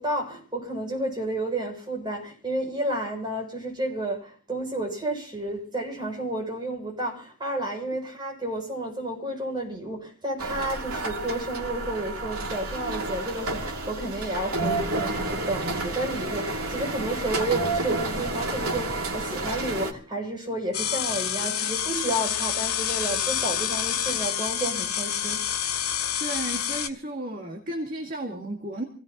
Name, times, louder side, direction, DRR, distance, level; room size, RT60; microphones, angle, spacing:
voice 1, 0.0-25.4, right 1 dB, 20° right, 7.3 m, -31 dB
sound 1, 10.4-19.9, right 2 dB, 80° right, 2.6 m, -30 dB
sound 2, 20.7-26.9, left 9 dB, 85° left, 2.2 m, -28 dB
voice 2, 26.2-28.8, right 1 dB, 40° right, 2.1 m, -33 dB
27.0 x 17.5 x 3.0 m
head